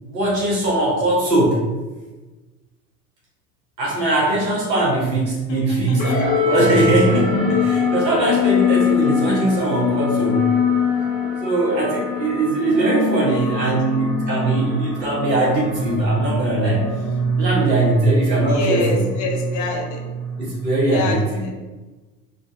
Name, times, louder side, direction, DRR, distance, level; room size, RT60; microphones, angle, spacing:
voice 1, 0.0-1.6 3.8-10.5 11.2-16.9 17.4-19.1 20.4-21.5, right 2 dB, 80° right, -4 dB, 1.2 m, -20 dB
voice 2, 5.5-6.3 13.3-14.0 18.5-20.0 20.9-21.2 21.4-21.5, left 3 dB, 35° left, 0 dB, 0.8 m, -27 dB
sound 1, 6.0-20.7, left 4 dB, 90° left, 1.1 m, -23 dB
3.7 x 2.3 x 2.6 m, 1.2 s
hypercardioid pair, 80°, 50 cm